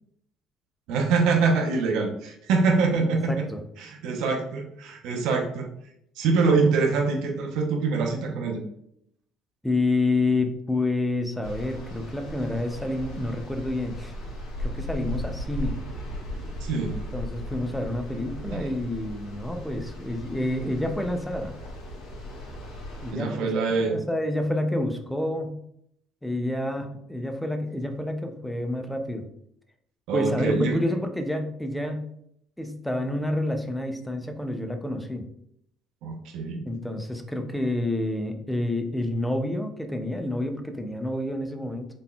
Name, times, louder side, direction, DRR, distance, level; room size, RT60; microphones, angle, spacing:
voice 1, 0.9-3.4 3.8-5.7 6.2-8.6 16.6-16.9 18.5-18.7 23.1-23.9 30.1-30.8 36.0-36.6, right 4 dB, 70° right, 1 dB, 0.7 m, -24 dB
voice 2, 3.3-3.6 9.6-14.2 14.6-15.8 17.1-21.6 23.0-25.6 26.2-29.2 30.1-32.1 32.6-35.2 36.7-41.9, left 1 dB, 5° left, 5 dB, 0.4 m, -28 dB
sound 1, 11.4-23.1, left 1 dB, 75° left, 1.3 m, -36 dB
3.8 x 3.7 x 2.3 m, 0.72 s
cardioid pair, 160°, 0 cm